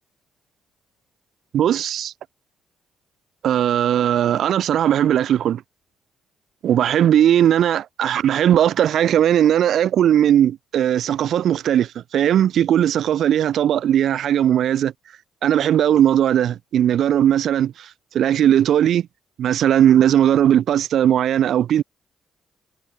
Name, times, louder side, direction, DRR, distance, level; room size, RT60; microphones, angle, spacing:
voice 1, 1.5-2.1 3.4-5.6 6.6-14.9 15.4-17.9 18.1-19.1 19.4-21.8, right 10 dB, 70° right, 0.8 m, -18 dB
cardioid pair, 90°, 0 cm